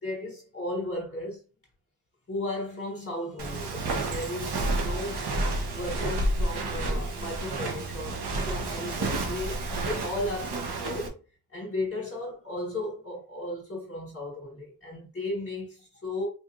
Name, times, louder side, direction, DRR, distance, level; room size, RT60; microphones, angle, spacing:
voice 1, 0.0-1.4 2.3-5.3 5.7-11.2 11.5-16.3, left 1 dB, 35° left, 1.4 m, -35 dB
Walk footsteps, 3.4-11.1, right 2 dB, 85° right, 0.9 m, -30 dB
4.2 x 2.8 x 2.5 m
wide cardioid pair, 95°, 39 cm